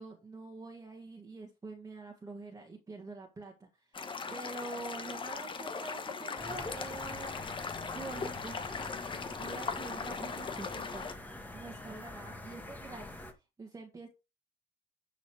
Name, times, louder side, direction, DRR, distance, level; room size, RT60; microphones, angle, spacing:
voice 1, 0.0-8.6 9.4-13.2 13.6-14.1, right 3 dB, 20° right, 1 dB, 1.9 m, -46 dB
sound 1, 3.9-11.1, left 5 dB, 30° left, 1.3 m, -39 dB
sound 2, 6.4-13.3, left 2 dB, 10° left, 1.6 m, -46 dB
11.5 x 4.0 x 4.8 m, 0.27 s
cardioid pair, 110°, 17 cm